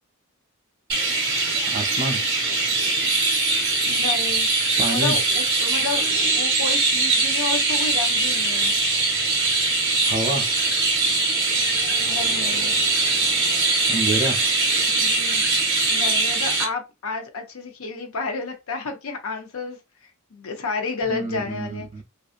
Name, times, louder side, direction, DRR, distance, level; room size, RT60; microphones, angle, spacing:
Chirp tweet, 0.9-16.6, right 3 dB, 55° right, 0.8 m, -22 dB
voice 1, 1.7-2.2 4.8-5.2 10.0-10.5 13.9-14.4 21.0-22.0, right 2 dB, 35° right, 0.5 m, -27 dB
voice 2, 3.8-4.5 4.9-8.7 12.0-12.8 14.8-15.4 15.9-19.8 20.3-21.9, left 4 dB, 65° left, 0.6 m, -31 dB
2.6 x 2.3 x 2.4 m
head